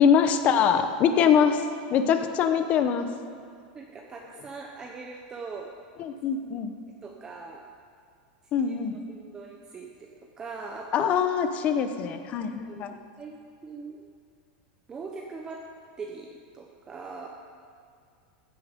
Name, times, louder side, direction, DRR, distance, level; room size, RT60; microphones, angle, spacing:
voice 1, 0.0-1.6 1.9-3.1 6.0-6.7 8.5-8.9 10.9-13.0, left 7 dB, 30° left, 8 dB, 0.8 m, -23 dB
voice 2, 3.7-5.7 7.0-7.7 8.6-8.7 9.1-10.1 10.4-11.2 12.4-13.4 13.6-14.1 14.9-15.7 16.0-17.3, right 4 dB, 15° right, 0 dB, 0.8 m, -41 dB
15.5 x 10.0 x 5.2 m, 2.3 s
supercardioid pair, 165°, 5 cm